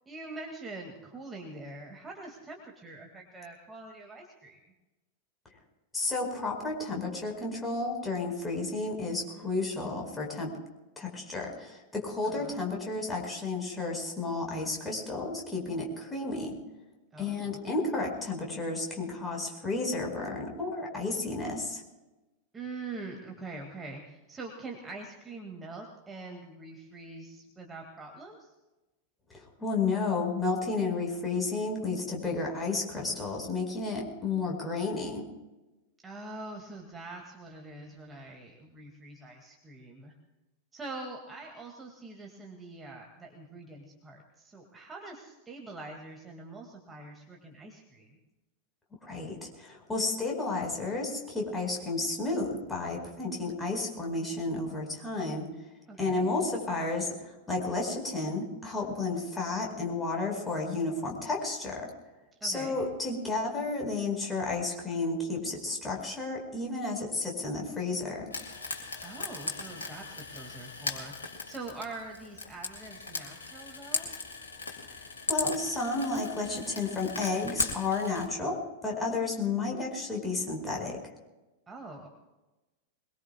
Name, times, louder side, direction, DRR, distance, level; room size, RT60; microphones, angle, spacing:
voice 1, 0.1-4.6 9.3-9.5 12.2-12.6 17.1-17.6 22.5-28.5 36.0-40.1 40.7-48.2 55.9-56.3 62.4-62.8 69.0-74.1 81.7-82.1, right 3 dB, 15° right, 1 dB, 2.2 m, -44 dB
voice 2, 5.9-10.5 11.0-16.5 17.2-21.8 29.3-35.2 49.0-55.5 56.0-61.9 62.4-68.3 75.3-81.0, left 3 dB, 10° left, -1 dB, 4.8 m, -32 dB
Frying (food), 68.3-78.3, left 3 dB, 70° left, 2.7 m, -37 dB
23.0 x 22.0 x 2.3 m, 1.1 s
figure-of-eight pair, 90°, 0 cm